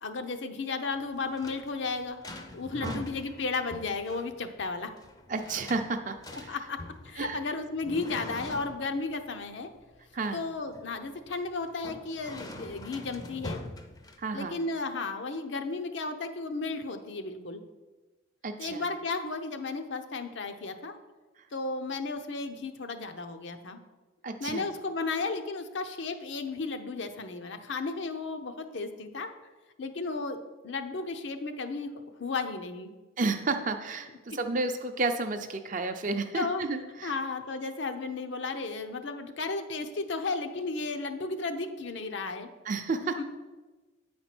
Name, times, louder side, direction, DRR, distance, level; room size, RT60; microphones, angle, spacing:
voice 1, 0.0-2.2 2.5-4.9 6.5-9.7 10.3-13.6 14.3-17.6 18.6-21.0 21.5-23.8 24.4-29.3 29.8-30.4 30.6-31.9 32.2-32.9 34.3-34.4 36.3-36.6 37.0-42.5 43.1-43.2, left 3 dB, 65° left, 7 dB, 0.7 m, -34 dB
sound 1, 0.9-14.6, left 2 dB, 20° left, 0.5 m, -44 dB
voice 2, 5.3-6.6 7.2-7.4 10.1-10.4 14.2-14.6 18.4-18.8 24.2-24.7 33.2-37.2 42.7-43.2, right 3 dB, 40° right, 7 dB, 0.6 m, -31 dB
8.9 x 4.3 x 6.0 m, 1.2 s
head